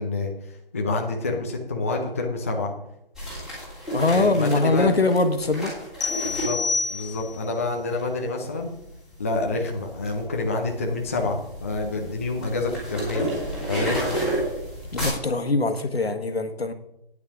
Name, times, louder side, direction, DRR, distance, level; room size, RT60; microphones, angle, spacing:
voice 1, 0.0-2.7 4.1-4.9 6.2-6.6 6.9-8.7 9.2-13.3 13.7-14.1, left 3 dB, 15° left, 1 dB, 0.6 m, -27 dB
sound 1, 3.2-7.2 7.9-8.1 8.6-15.1, right 1 dB, ahead, 3.0 m, -32 dB
voice 2, 3.9-5.7 14.9-16.7, left 3 dB, 80° left, 8 dB, 1.5 m, -22 dB
sound 2, 6.0-7.5, left 4 dB, 65° left, 0.8 m, -28 dB
9.5 x 8.5 x 5.0 m, 0.83 s
figure-of-eight pair, 155°, 30 cm